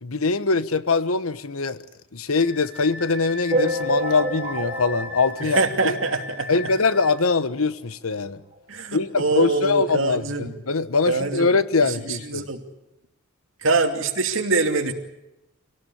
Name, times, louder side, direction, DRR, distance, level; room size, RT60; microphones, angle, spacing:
voice 1, 0.0-1.8 2.1-5.9 6.5-8.4 8.9-12.5, left 4 dB, 85° left, 13 dB, 1.2 m, -23 dB
Wind instrument woodwind instrument, 2.4-7.1, left 3 dB, 10° right, 5.5 m, -37 dB
sound 1, 3.5-6.4 6.8-6.9 7.1-7.3 7.6-7.7 8.5-8.6 9.1-9.2, right 1 dB, 30° right, 3.6 m, -28 dB
voice 2, 5.4-6.5 8.7-10.5 11.1-11.5 11.8-12.6 13.6-14.9, right 3 dB, 65° right, 5 dB, 2.8 m, -24 dB
27.0 x 18.0 x 8.7 m, 0.90 s
head